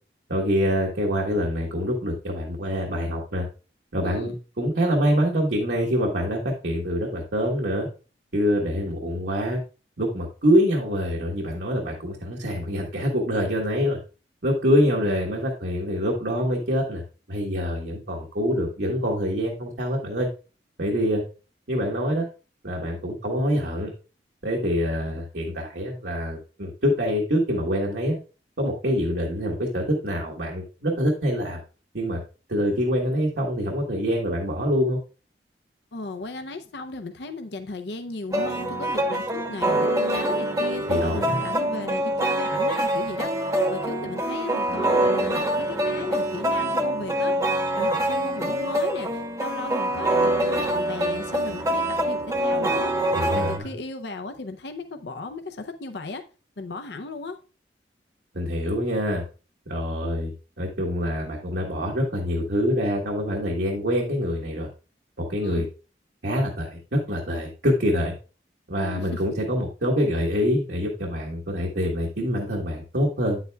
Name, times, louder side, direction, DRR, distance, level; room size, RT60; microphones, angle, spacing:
voice 1, 0.3-3.5 3.9-7.9 8.3-9.6 10.0-14.0 14.4-17.0 17.3-20.3 20.8-21.2 21.7-22.2 22.6-23.9 24.4-28.2 28.6-31.6 31.9-32.2 32.5-35.0 40.9-41.5 53.1-53.7 58.3-59.2 59.7-64.7 65.2-65.6 66.2-68.1 68.7-73.4, equal, 70° right, 1.4 m, -25 dB
voice 2, 4.1-4.4 35.9-47.5 47.7-52.9 53.3-56.2 56.6-57.4 65.4-65.7 68.8-69.2, left 3 dB, 70° left, 0.6 m, -36 dB
sound 1, 38.3-53.6, right 1 dB, 20° right, 0.9 m, -25 dB
9.5 x 8.0 x 2.3 m
head